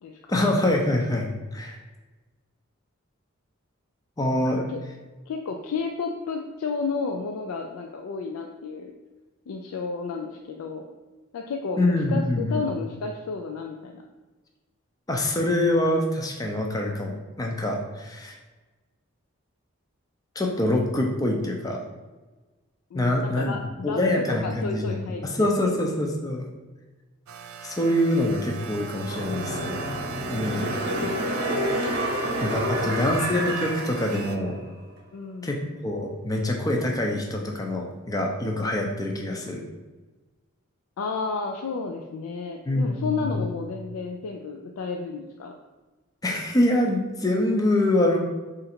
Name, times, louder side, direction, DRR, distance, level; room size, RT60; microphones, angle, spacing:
voice 1, 0.3-1.8 4.2-4.6 11.8-12.6 15.1-18.4 20.4-21.8 22.9-26.5 27.6-29.8 30.3-30.7 32.4-34.6 35.4-39.7 42.7-43.5 46.2-48.2, left 1 dB, 15° left, 1 dB, 0.4 m, -25 dB
voice 2, 4.4-4.8 5.3-8.9 9.5-10.8 11.3-14.1 22.9-25.7 30.7-31.4 32.7-33.2 35.1-35.6 41.0-45.5, left 4 dB, 90° left, 2 dB, 0.3 m, -32 dB
sound 1, 27.3-34.4, right 7 dB, 85° right, 0.4 m, -39 dB
sound 2, 29.0-34.6 35.0-35.1, equal, 50° right, 0.8 m, -29 dB
3.9 x 2.5 x 4.2 m, 1.2 s
head